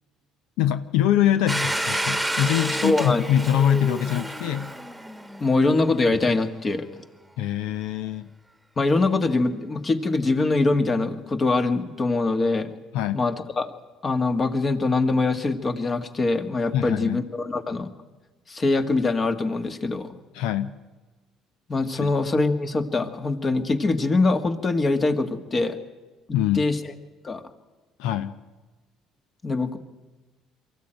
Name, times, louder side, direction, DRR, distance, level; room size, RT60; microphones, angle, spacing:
voice 1, 0.6-4.7 7.4-8.3 12.9-13.2 16.7-17.2 20.3-20.8 22.0-22.1 26.3-26.6 28.0-28.4, left 10 dB, 80° left, 11 dB, 0.7 m, -24 dB
Domestic sounds home sounds, 1.5-6.1, right 1 dB, ahead, 1.6 m, -30 dB
voice 2, 2.8-3.2 5.4-6.9 8.8-12.7 13.1-13.7 14.0-17.9 18.5-20.2 21.7-25.8 26.6-26.8 27.2-27.4 29.4-29.8, left 3 dB, 30° left, 8 dB, 1.8 m, -23 dB
23.0 x 14.5 x 9.0 m, 1.3 s
supercardioid pair, 85°, 0 cm